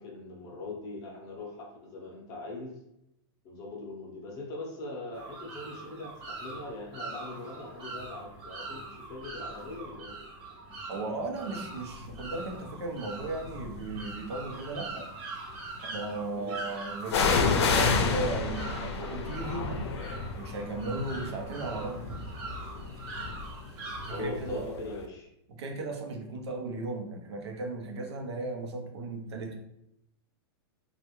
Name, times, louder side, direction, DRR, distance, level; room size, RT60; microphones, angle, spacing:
voice 1, 0.0-2.8 3.4-10.2 16.3-16.6 24.1-25.3, left 2 dB, 25° left, -1 dB, 0.6 m, -41 dB
sound 1, 5.1-24.2, right 2 dB, 35° right, 0.7 m, -42 dB
voice 2, 10.9-15.1 15.8-19.7 20.4-22.1 24.0-24.8 25.5-29.6, right 2 dB, 85° right, 3 dB, 0.8 m, -36 dB
sound 2, 12.1-12.5 13.2-14.2 17.1-24.7 25.0-25.1, left 4 dB, 90° left, 0.5 m, -30 dB
3.3 x 2.4 x 3.0 m, 0.81 s
supercardioid pair, 170°, 14 cm